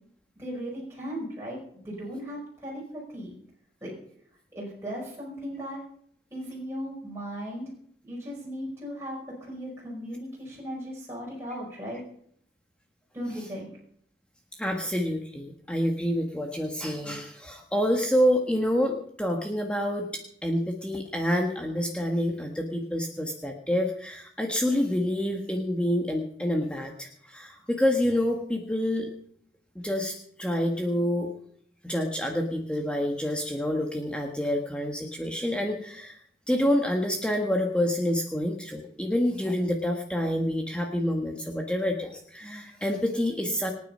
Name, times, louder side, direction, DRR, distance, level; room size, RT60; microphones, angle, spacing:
voice 1, 0.4-3.3 3.8-3.9 4.5-5.8 6.3-7.7 8.0-12.0 13.1-13.7, equal, 15° right, -5 dB, 5.4 m, -37 dB
voice 2, 14.6-29.1 29.7-31.3 31.8-36.2 36.5-43.7, equal, 5° left, 1 dB, 1.6 m, -27 dB
26.0 x 9.6 x 5.6 m, 0.65 s
head